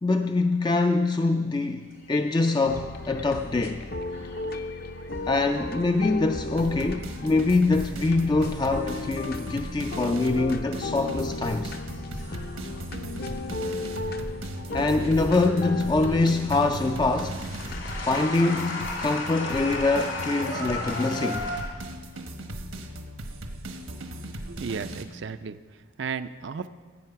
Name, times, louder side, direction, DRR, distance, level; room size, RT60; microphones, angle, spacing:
voice 1, 0.0-3.9 5.3-11.7 14.7-17.4 18.0-21.5, left 3 dB, 20° left, 6 dB, 0.3 m, -24 dB
sound 1, 1.9-7.1 7.5-10.3 10.7-11.1 11.7-14.3 14.7-21.6, left 2 dB, 70° left, 2.6 m, -38 dB
sound 2, 2.6-18.1, left 2 dB, 50° left, 0.7 m, -35 dB
sound 3, 6.6-25.0, right 1 dB, 80° right, 1.2 m, -38 dB
voice 2, 24.5-25.6 26.0-26.7, right 5 dB, 60° right, 11 dB, 0.4 m, -34 dB
15.5 x 8.6 x 5.7 m, 1.5 s
head